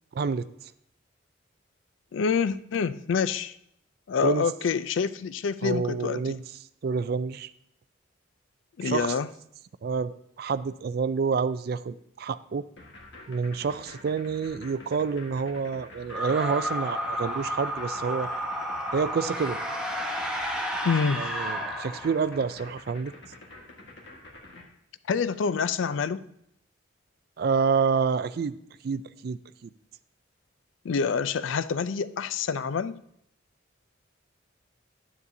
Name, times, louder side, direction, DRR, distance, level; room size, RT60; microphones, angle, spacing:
voice 1, 0.1-0.5 4.2-4.4 5.6-6.4 6.8-7.5 8.8-9.1 9.8-10.1 10.4-12.7 13.3-18.3 18.9-19.6 21.2-23.1 27.4-28.5 28.8-29.7, right 5 dB, 50° right, 15 dB, 0.3 m, -28 dB
voice 2, 2.1-3.5 4.1-6.3 8.8-9.3 20.8-21.3 25.1-26.2 30.8-33.0, left 5 dB, 75° left, 15 dB, 0.4 m, -27 dB
sound 1, 12.8-24.6, left 2 dB, 60° left, 1.5 m, -47 dB
sound 2, 16.1-22.5, equal, 5° right, 0.9 m, -32 dB
9.9 x 9.4 x 2.7 m, 0.73 s
head